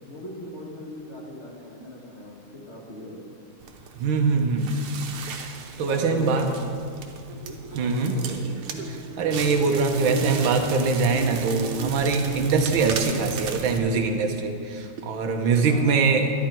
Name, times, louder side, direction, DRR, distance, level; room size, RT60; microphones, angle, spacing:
voice 1, 0.1-3.2 5.8-6.4 7.7-8.4 15.6-16.2, left 1 dB, 30° left, -3 dB, 2.1 m, -38 dB
Crackle, 3.6-13.8, right 6 dB, 90° right, 1.8 m, -35 dB
voice 2, 4.0-4.7 5.8-6.5 7.7-8.2 8.9-16.3, right 4 dB, 70° right, 4 dB, 1.7 m, -23 dB
12.0 x 11.5 x 4.5 m, 2.3 s
omnidirectional pair, 2.4 m